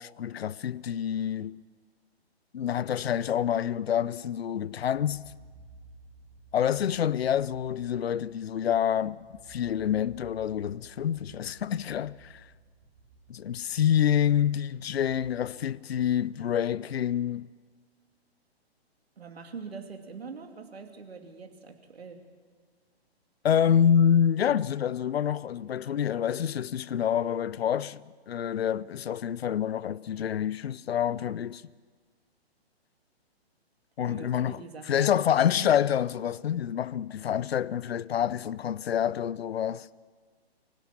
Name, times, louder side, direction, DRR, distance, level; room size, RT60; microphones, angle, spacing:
voice 1, 0.0-1.6 2.5-5.3 6.5-9.2 9.5-12.4 13.3-17.5 23.4-31.6 34.0-34.6 34.9-39.9, left 9 dB, 70° left, 0.6 m, -27 dB
sound 1, 4.8-15.3, right 3 dB, 35° right, 3.6 m, -54 dB
voice 2, 19.2-22.3 34.1-35.8, right 5 dB, 70° right, 2.9 m, -44 dB
25.0 x 17.0 x 7.3 m
figure-of-eight pair, 130°, 32 cm